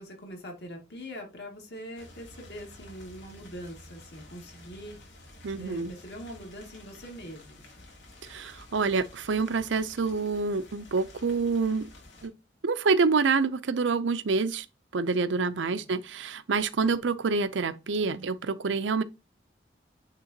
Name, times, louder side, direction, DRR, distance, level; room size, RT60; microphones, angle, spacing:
voice 1, 0.0-5.0 5.6-7.6 15.6-15.8 16.8-17.1, equal, 65° left, 2.3 m, -43 dB
sound 1, 2.0-12.3, left 1 dB, 85° left, 2.6 m, -51 dB
voice 2, 5.4-5.9 8.2-11.9 12.2-12.3 12.6-14.7 14.9-19.0, right 4 dB, 85° right, 0.6 m, -27 dB
9.2 x 3.6 x 2.9 m
head